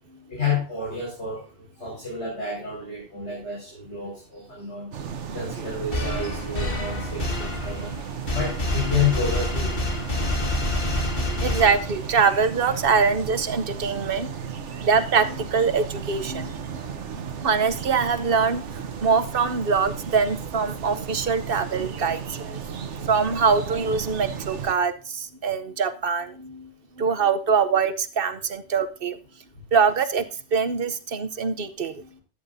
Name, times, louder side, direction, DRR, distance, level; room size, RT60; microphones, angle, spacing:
voice 1, 0.3-1.4 1.8-4.9 5.3-8.0 8.3-9.9 11.5-11.6, left 5 dB, 75° left, -5 dB, 5.3 m, -29 dB
sound 1, 4.9-24.7, right 7 dB, 85° right, 1.3 m, -35 dB
sound 2, 5.9-12.3, left 2 dB, 55° left, 2.0 m, -28 dB
voice 2, 11.2-14.3 14.8-16.8 17.1-22.6 22.9-26.7 27.0-29.2 29.7-32.1, right 5 dB, 55° right, 12 dB, 1.0 m, -24 dB
14.0 x 9.5 x 2.7 m, 0.33 s
omnidirectional pair, 1.2 m